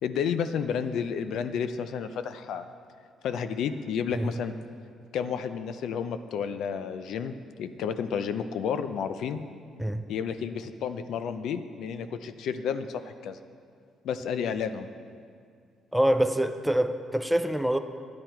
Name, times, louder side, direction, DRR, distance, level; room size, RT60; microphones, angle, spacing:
voice 1, 0.0-2.7 3.2-4.5 5.1-9.4 10.1-13.4 14.0-14.9, left 7 dB, 70° left, 10 dB, 0.5 m, -31 dB
voice 2, 15.9-17.8, right 1 dB, ahead, 9 dB, 0.4 m, -25 dB
11.5 x 9.6 x 4.4 m, 2.2 s
cardioid pair, 145°, 0 cm